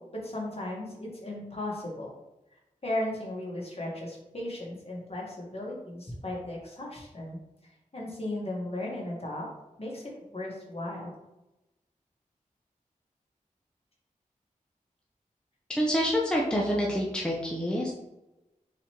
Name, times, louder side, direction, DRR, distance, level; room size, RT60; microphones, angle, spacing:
voice 1, 0.0-2.1 2.5-9.5 9.8-11.1, left 1 dB, 45° left, -3 dB, 1.6 m, -36 dB
voice 2, 15.7-17.9, equal, 5° left, -3 dB, 0.8 m, -27 dB
4.3 x 4.0 x 3.0 m, 0.95 s
cardioid pair, 50°, 14 cm